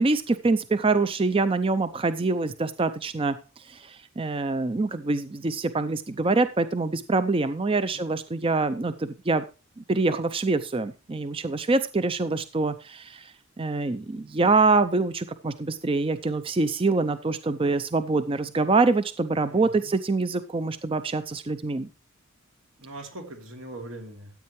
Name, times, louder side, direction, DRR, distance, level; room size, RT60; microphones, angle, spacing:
voice 1, 0.0-9.4 9.8-21.9, right 3 dB, 25° right, 12 dB, 0.5 m, -25 dB
voice 2, 19.4-20.0 22.8-24.3, right 1 dB, 80° right, 3 dB, 3.0 m, -41 dB
14.0 x 8.5 x 3.2 m, 0.30 s
head